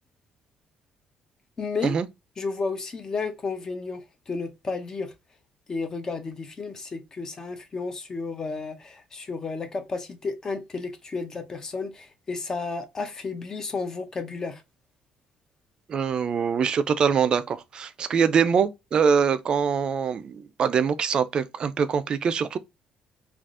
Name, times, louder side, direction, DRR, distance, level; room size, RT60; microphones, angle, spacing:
voice 1, 1.6-2.0 2.4-5.1 5.7-14.6, left 4 dB, 25° left, 0.6 m, -32 dB
voice 2, 15.9-22.6, right 6 dB, 40° right, 0.3 m, -23 dB
3.4 x 2.4 x 2.4 m
cardioid pair, 145°, 2 cm